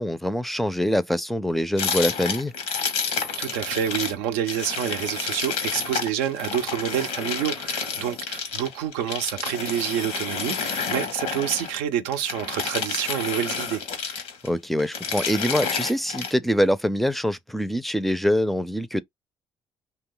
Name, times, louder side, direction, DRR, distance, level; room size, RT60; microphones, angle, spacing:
voice 1, 0.0-2.5 14.4-19.0, equal, ahead, 0.4 m, -24 dB
sound 1, 1.8-4.2 4.5-11.8 12.1-14.5 14.8-16.3, left 6 dB, 85° left, 0.9 m, -30 dB
voice 2, 3.4-13.8, right 10 dB, 90° right, 0.5 m, -28 dB
2.7 x 2.2 x 3.8 m
supercardioid pair, 65°, 11 cm